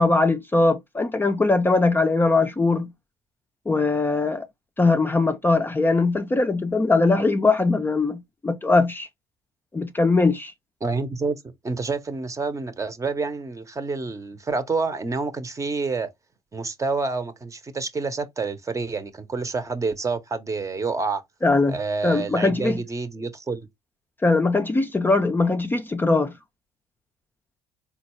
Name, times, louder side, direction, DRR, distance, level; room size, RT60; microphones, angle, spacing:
voice 1, 0.0-2.9 3.7-4.5 4.8-9.1 9.7-10.5 21.4-21.8 22.0-22.8 24.2-26.3, left 3 dB, 15° left, 0.4 m, -21 dB
voice 2, 10.8-16.1 16.5-21.2 21.7-23.7, right 4 dB, 25° right, 0.7 m, -28 dB
3.9 x 2.3 x 3.0 m
hypercardioid pair, 65°, 12 cm